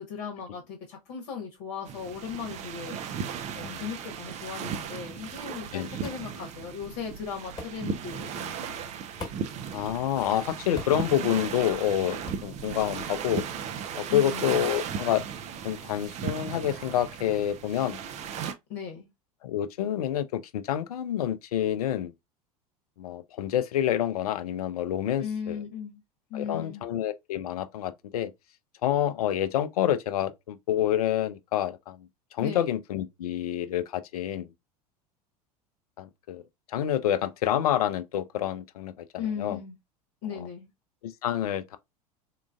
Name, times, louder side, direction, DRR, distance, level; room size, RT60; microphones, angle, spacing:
voice 1, 0.0-3.0 3.5-8.7 14.1-14.6 18.7-19.1 25.2-26.0 26.3-26.9 32.4-32.7 39.2-39.7 40.2-40.7, left 7 dB, 50° left, 1.1 m, -37 dB
sound 1, 1.9-18.5, right 7 dB, 35° right, 0.5 m, -36 dB
sound 2, 6.0-6.3 7.6-7.8 9.2-9.6 10.8-11.1 12.2-12.5, left 1 dB, 20° left, 1.4 m, -39 dB
voice 2, 9.7-13.4 13.9-15.2 15.6-18.0 18.3-18.5 19.4-22.1 23.0-25.6 26.3-28.3 28.8-34.5 36.0-36.4 36.7-39.6 40.3-40.5 41.0-41.8, left 11 dB, 70° left, 0.5 m, -28 dB
3.7 x 2.4 x 2.2 m
figure-of-eight pair, 80°, 20 cm